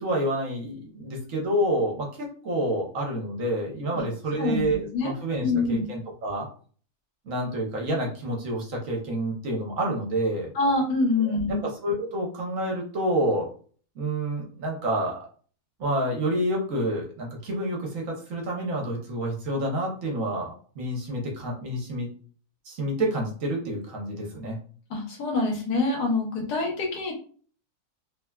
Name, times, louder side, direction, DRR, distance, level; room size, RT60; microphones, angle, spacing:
voice 1, 0.0-6.5 7.3-10.5 11.2-13.5 14.0-15.2 15.8-22.1 22.7-24.6, right 1 dB, 60° right, -1 dB, 1.1 m, -28 dB
voice 2, 4.4-5.1 5.4-5.8 10.5-11.6 24.9-27.1, left 3 dB, 90° left, 0 dB, 1.4 m, -25 dB
3.1 x 2.2 x 2.2 m, 0.44 s
omnidirectional pair, 1.6 m